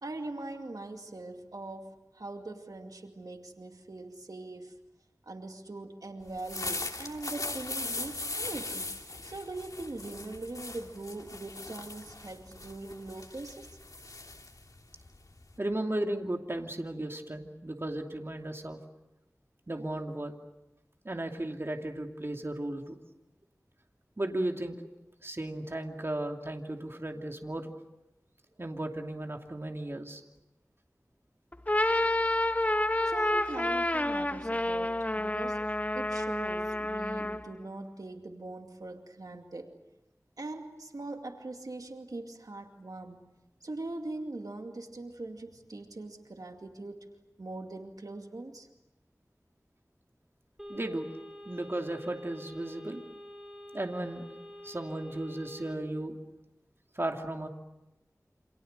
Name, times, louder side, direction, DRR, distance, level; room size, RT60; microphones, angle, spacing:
voice 1, 0.0-4.7 5.2-8.9 9.2-13.8 33.0-39.8 40.4-43.2 43.6-47.1 47.4-48.7, right 2 dB, 85° right, 4 dB, 2.4 m, -42 dB
sound 1, 6.3-15.6, left 2 dB, 75° left, 3.0 m, -39 dB
voice 2, 15.6-18.8 19.7-20.3 21.0-23.0 24.2-24.9 25.2-27.7 28.6-30.2 50.7-51.1 51.4-53.0 53.7-54.2 54.6-56.1 56.9-57.5, right 1 dB, 40° right, 3 dB, 2.7 m, -35 dB
sound 2, 31.5-37.5, left 1 dB, 25° left, 1.0 m, -29 dB
sound 3, 50.6-55.7, equal, 5° right, 6.4 m, -47 dB
29.0 x 27.0 x 6.7 m, 0.97 s
wide cardioid pair, 50°, 6 cm